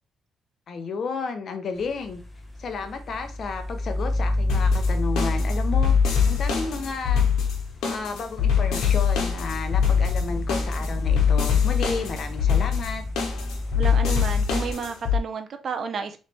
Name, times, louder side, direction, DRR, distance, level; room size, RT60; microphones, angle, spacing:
voice 1, 0.7-2.2 2.6-5.9 6.3-7.2 7.9-13.0, left 5 dB, 55° left, 0.8 m, -32 dB
sound 1, 1.8-14.7, left 1 dB, 10° left, 1.1 m, -29 dB
sound 2, 4.5-15.2, left 7 dB, 80° left, 1.1 m, -23 dB
voice 2, 13.7-16.2, right 5 dB, 55° right, 0.6 m, -31 dB
3.9 x 3.2 x 3.3 m
cardioid pair, 90°, 0 cm